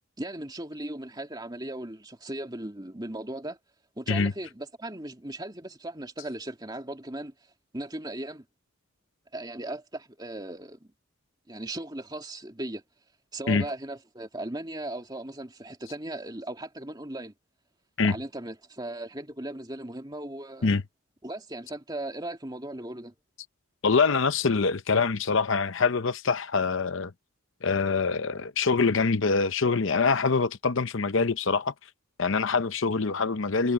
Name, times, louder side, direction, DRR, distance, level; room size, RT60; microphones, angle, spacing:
voice 1, 0.2-3.6 4.0-7.3 7.7-8.4 9.3-10.9 11.5-12.8 13.3-17.3 18.0-20.8 21.2-23.1, right 1 dB, 20° right, 2.6 m, -37 dB
voice 2, 23.8-27.1 27.6-31.7 32.2-33.7, left 4 dB, 60° left, 0.7 m, -24 dB
head